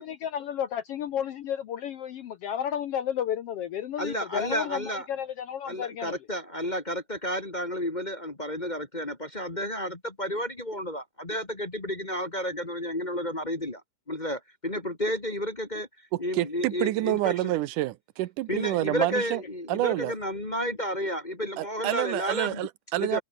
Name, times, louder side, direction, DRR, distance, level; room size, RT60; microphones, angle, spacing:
voice 1, 0.0-6.2, left 9 dB, 65° left, 1.5 m, -32 dB
voice 2, 4.0-5.0 5.6-13.8 14.1-15.9 16.2-17.5 18.5-22.7 23.0-23.2, equal, 20° left, 1.3 m, -31 dB
voice 3, 16.1-19.4 19.7-20.1 21.6-23.2, right 16 dB, 85° right, 2.3 m, -28 dB
omnidirectional pair, 3.7 m